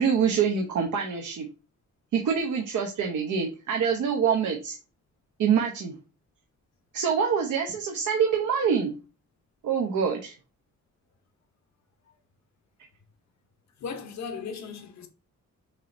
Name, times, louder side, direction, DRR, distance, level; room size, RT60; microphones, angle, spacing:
voice 1, 0.0-1.5 2.1-4.8 5.4-6.0 6.9-8.9 9.6-10.3, right 7 dB, 85° right, 0.9 m, -25 dB
voice 2, 13.8-15.1, left 5 dB, 65° left, 0.9 m, -37 dB
6.3 x 3.0 x 2.6 m
wide cardioid pair, 145°, 30 cm